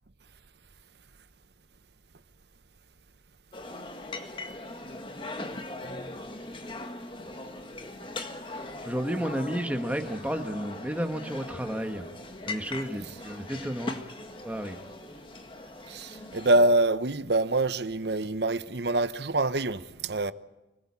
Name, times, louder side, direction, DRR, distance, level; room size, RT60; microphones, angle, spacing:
sound 1, 3.5-16.7, left 2 dB, 25° left, 1.7 m, -40 dB
Guitar, 5.8-7.5 7.8-9.5 9.9-10.2 10.5-10.8 11.2-11.3 11.6-11.8 12.1-12.3, equal, 30° right, 5.7 m, -55 dB
voice 1, 8.8-12.0 12.5-14.8, equal, 10° right, 1.3 m, -32 dB
voice 2, 15.9-20.3, right 2 dB, 65° right, 1.0 m, -25 dB
25.0 x 18.5 x 8.6 m
head